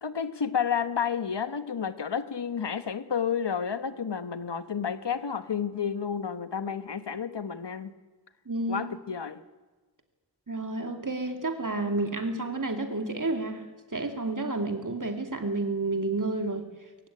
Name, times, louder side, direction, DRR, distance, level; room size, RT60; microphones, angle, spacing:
voice 1, 0.0-7.9 8.7-9.4, left 7 dB, 65° left, 12 dB, 1.3 m, -31 dB
voice 2, 8.5-8.9 10.5-13.6 13.9-16.7, right 2 dB, 45° right, 5 dB, 2.6 m, -30 dB
22.0 x 16.0 x 9.9 m, 1.3 s
wide cardioid pair, 55°, 45 cm